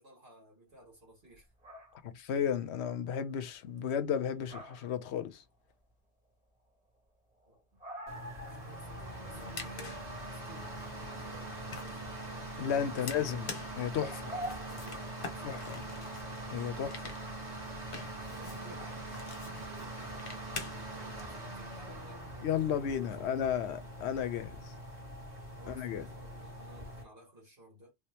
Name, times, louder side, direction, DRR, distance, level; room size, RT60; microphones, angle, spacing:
voice 1, 0.0-1.5 7.5-7.6 8.4-12.5 12.9-13.4 14.0-16.2 18.3-23.6 25.6-27.9, right 1 dB, 60° right, 2.0 m, -56 dB
sound 1, 1.3-2.0 4.2-5.1 5.3-5.8 6.3-6.4 6.7-6.8 6.9-7.0 7.3-8.8 9.1-9.2 9.6-10.0 12.3-12.4 14.0-15.5 16.2-16.6 18.3-18.4 18.8-19.0, equal, 5° right, 1.6 m, -45 dB
voice 2, 2.0-5.4 12.6-13.5 13.8-14.1 15.4-15.8 16.5-17.1 22.4-24.7 25.7-26.1, left 8 dB, 80° left, 0.9 m, -33 dB
sound 2, 8.1-27.0, right 1 dB, 35° right, 1.7 m, -43 dB
sound 3, 9.2-21.2, left 4 dB, 55° left, 1.1 m, -48 dB
3.4 x 2.9 x 3.3 m
omnidirectional pair, 1.1 m